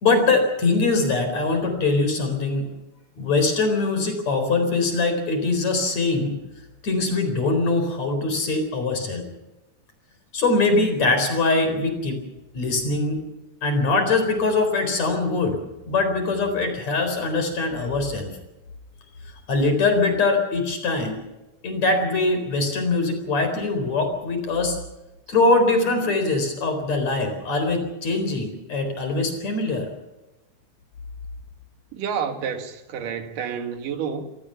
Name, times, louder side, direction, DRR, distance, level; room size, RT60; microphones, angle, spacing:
voice 1, 0.0-2.7 3.2-6.4 6.8-9.3 10.3-12.2 12.5-13.2 13.6-15.6 15.9-18.3 19.5-21.2 21.6-24.8 25.3-29.9, left 3 dB, 55° left, 5.3 m, -22 dB
voice 2, 31.9-34.3, right 7 dB, 90° right, 3.4 m, -29 dB
27.5 x 18.5 x 5.8 m
omnidirectional pair, 3.7 m